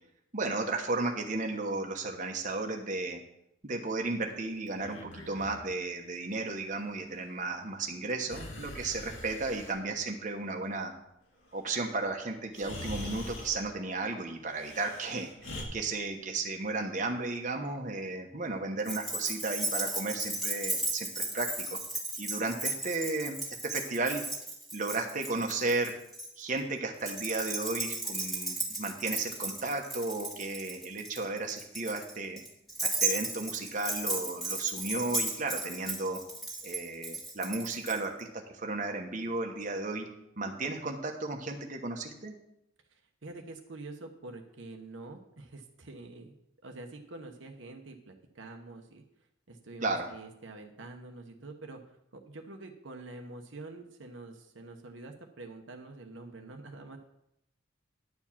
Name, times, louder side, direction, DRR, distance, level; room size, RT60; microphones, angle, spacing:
voice 1, 0.3-3.2 3.6-10.9 11.5-21.8 22.2-24.2 24.7-25.9 26.4-32.4 32.8-36.2 36.6-40.1 40.4-42.3 49.8-50.1, right 3 dB, 40° right, 2 dB, 1.1 m, -34 dB
Breathing, 4.7-5.6 8.3-9.8 11.9-12.0 12.5-13.6 14.5-15.6, left 1 dB, 80° left, 2.3 m, -43 dB
Keys jangling, 18.8-26.3 27.0-38.0, right 2 dB, ahead, 1.9 m, -35 dB
voice 2, 42.9-46.3 46.6-49.0 49.5-57.0, right 2 dB, 70° right, 4 dB, 1.0 m, -46 dB
10.5 x 4.8 x 7.2 m, 0.82 s
head